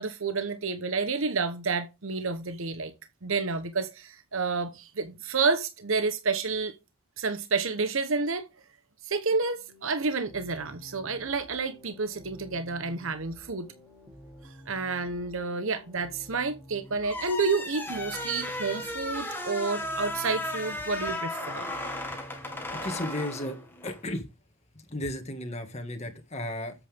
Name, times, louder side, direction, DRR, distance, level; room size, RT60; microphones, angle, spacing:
voice 1, 0.0-2.9 3.2-6.7 7.2-8.5 9.0-13.7 14.4-21.7, right 4 dB, 65° right, 1.0 m, -30 dB
sound 1, 9.3-22.9, equal, 5° right, 3.2 m, -51 dB
sound 2, 17.0-24.0, left 1 dB, 10° left, 2.0 m, -35 dB
voice 2, 22.8-23.6 23.8-24.2 24.9-26.7, left 1 dB, 30° left, 1.9 m, -34 dB
9.8 x 8.3 x 3.6 m
head